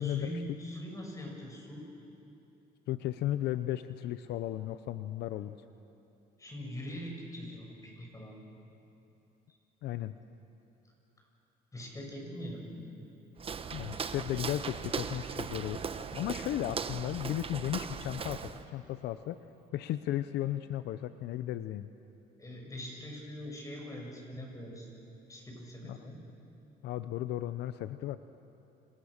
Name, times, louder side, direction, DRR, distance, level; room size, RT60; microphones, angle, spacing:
voice 1, 0.0-1.9 6.4-8.4 11.7-12.7 22.4-24.9 25.3-26.2, equal, 20° left, 1 dB, 7.3 m, -42 dB
voice 2, 2.9-5.6 9.8-10.1 13.7-15.8 16.1-18.4 18.7-19.4 19.7-21.9 25.8-26.1 26.8-28.2, left 13 dB, 80° left, 11 dB, 0.8 m, -35 dB
Walk footsteps, 13.4-18.7, right 6 dB, 35° right, 1.2 m, -38 dB
29.5 x 27.0 x 6.7 m, 2.8 s
cardioid pair, 110°, 17 cm